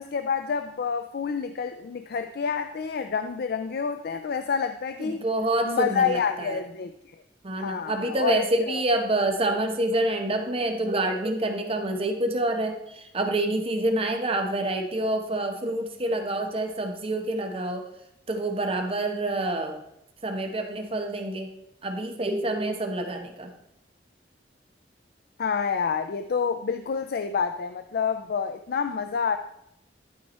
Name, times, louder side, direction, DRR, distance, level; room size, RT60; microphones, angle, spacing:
voice 1, 0.0-5.2 5.7-7.2 7.6-8.8 25.4-29.4, left 6 dB, 60° left, 9 dB, 0.4 m, -28 dB
voice 2, 5.0-6.6 7.4-17.9 18.3-19.8 20.2-21.5 21.8-23.5, right 1 dB, 30° right, 4 dB, 0.9 m, -27 dB
11.5 x 4.7 x 4.2 m, 0.81 s
head